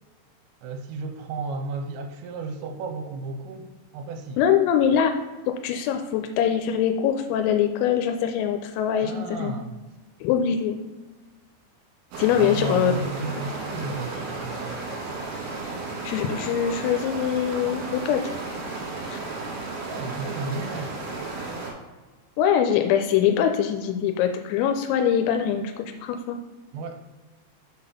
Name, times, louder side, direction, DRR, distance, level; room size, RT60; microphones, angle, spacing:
voice 1, 0.6-3.7 3.9-4.4 9.0-9.7 12.3-14.8 19.9-21.0 26.7-27.0, right 3 dB, 85° right, 6 dB, 3.2 m, -33 dB
voice 2, 4.4-5.2 5.5-9.5 10.2-10.8 12.2-13.0 16.0-18.3 19.1-19.2 22.4-26.4, left 9 dB, 90° left, 6 dB, 3.2 m, -23 dB
sound 1, 12.1-21.7, right 3 dB, 60° right, 3.4 m, -33 dB
7.0 x 4.1 x 5.5 m, 1.2 s
omnidirectional pair, 5.9 m